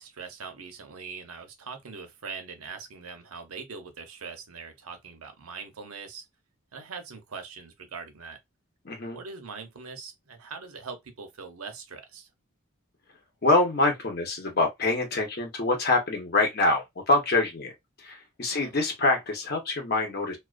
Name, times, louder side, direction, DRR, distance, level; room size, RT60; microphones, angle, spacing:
voice 1, 0.0-6.2 6.7-8.4 9.1-12.3 18.5-18.7, right 5 dB, 90° right, 0.7 m, -42 dB
voice 2, 8.8-9.2 13.4-17.7 18.0-20.4, left 2 dB, 45° left, 0.8 m, -25 dB
2.3 x 2.2 x 2.4 m
head